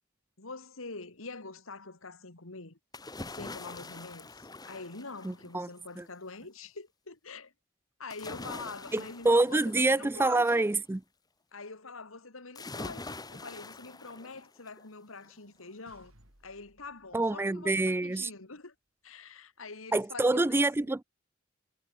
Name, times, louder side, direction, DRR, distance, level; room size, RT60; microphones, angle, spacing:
voice 1, 0.4-2.8 3.3-7.5 8.0-10.6 11.5-16.1 16.4-18.7 19.0-20.7, left 3 dB, 85° left, 2.3 m, -45 dB
sound 1, 2.9-5.7 8.1-10.7 12.5-14.8 15.2-15.3, left 2 dB, 20° left, 1.5 m, -44 dB
voice 2, 5.2-5.7 6.0-6.1 8.9-11.0 17.1-18.3 19.9-21.0, right 2 dB, 10° right, 0.3 m, -26 dB
sound 2, 15.0-18.1, right 1 dB, 85° right, 7.5 m, -64 dB
head